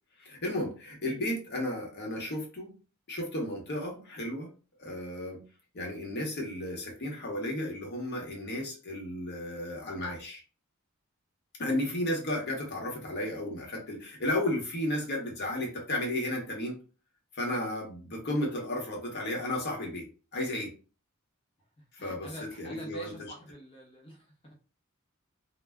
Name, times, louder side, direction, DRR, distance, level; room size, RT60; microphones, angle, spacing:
voice 1, 0.2-2.7 3.1-4.5 4.8-5.4 5.7-10.4 11.6-16.8 17.3-20.1 20.3-20.7 21.9-23.1, left 1 dB, 50° left, 0 dB, 0.9 m, -33 dB
voice 2, 21.8-24.5, equal, 25° left, -1 dB, 0.6 m, -47 dB
2.1 x 2.0 x 3.4 m, 0.35 s
head